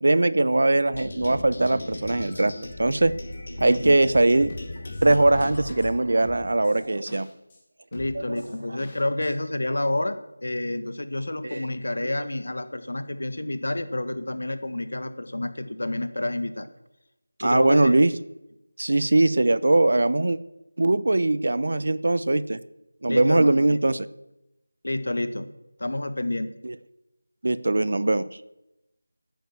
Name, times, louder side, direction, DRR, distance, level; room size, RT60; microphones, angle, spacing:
voice 1, 0.0-2.5 2.8-3.1 3.6-4.5 5.0-7.3 8.1-8.4 11.4-11.7 17.4-18.2 18.8-20.4 20.8-22.6 23.0-24.1 26.6-26.7 27.4-28.2, right 2 dB, 60° right, 16 dB, 0.7 m, -21 dB
sound 1, 0.9-5.9, left 1 dB, 45° left, 3.2 m, -37 dB
voice 2, 3.6-3.9 7.9-16.7 17.4-18.0 23.1-23.8 24.8-25.5 25.8-26.5, left 1 dB, 70° left, 11 dB, 1.6 m, -29 dB
sound 2, 4.1-4.2 4.5-5.9 6.2-7.6 7.9-9.3 9.6-9.7, left 2 dB, 20° left, 2.5 m, -45 dB
12.0 x 9.2 x 7.2 m, 0.92 s
figure-of-eight pair, 170°, 0 cm